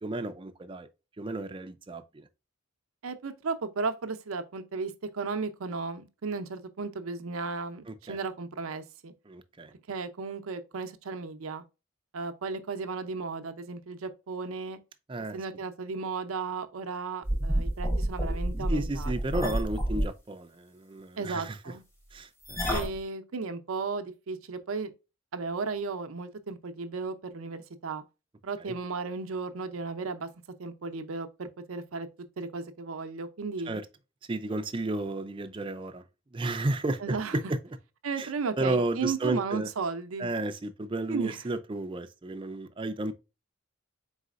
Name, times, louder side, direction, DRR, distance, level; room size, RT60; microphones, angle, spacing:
voice 1, 0.0-0.9 1.2-2.3 7.9-8.2 9.3-9.7 15.1-15.4 18.7-21.6 22.1-22.7 28.6-28.7 33.7-33.8 34.3-36.0 36.3-37.6 38.2-38.3 38.6-39.7 40.2-43.1, right 2 dB, 25° right, 0.4 m, -33 dB
voice 2, 3.0-9.1 9.9-11.6 12.1-14.8 15.3-19.4 21.2-21.8 22.7-24.9 25.3-28.0 28.4-30.3 30.6-32.1 32.4-33.8 37.0-37.4 38.0-40.3 41.1-41.4, right 4 dB, 90° right, 0.6 m, -35 dB
sound 1, 17.2-20.1 22.5-23.0, right 1 dB, 15° left, 1.0 m, -29 dB
4.1 x 3.9 x 2.4 m
head